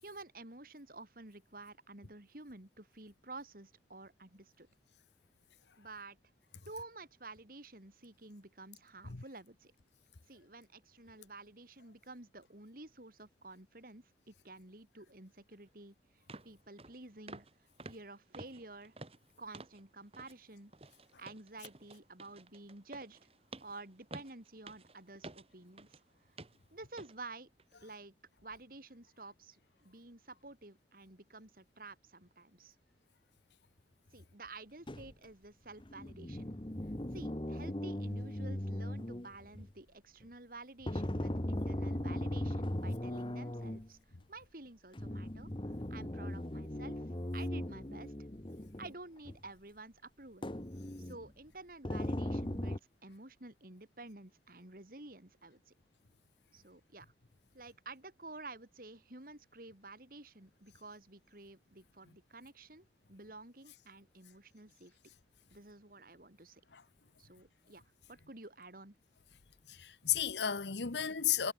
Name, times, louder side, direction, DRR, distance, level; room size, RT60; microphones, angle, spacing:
voice 1, 0.0-4.7 5.8-6.2 6.7-9.7 10.3-17.5 17.8-18.9 19.4-23.2 23.6-26.0 26.7-27.5 27.8-28.1 28.4-32.7 34.1-36.5 37.1-44.0 44.3-45.5 45.9-47.0 47.3-48.1 48.8-50.5 51.0-55.7 56.5-57.1 57.5-65.1 65.5-66.6 67.2-67.8 68.1-68.9, right 2 dB, 55° right, 3.4 m, -51 dB
sound 1, 15.7-15.8 16.3-16.5 16.8-17.0 17.3-17.5 17.8-19.8 20.1-20.4 20.7-26.0 26.4-26.6 27.0-27.2 27.6-27.7, right 2 dB, 35° right, 1.6 m, -51 dB
sound 2, 34.9-35.1 35.8-39.7 40.8-43.9 44.9-48.9 49.3-49.4 50.4-51.3 51.8-52.8, left 1 dB, 30° left, 1.4 m, -38 dB
voice 2, 69.7-71.5, left 9 dB, 80° left, 1.2 m, -33 dB
head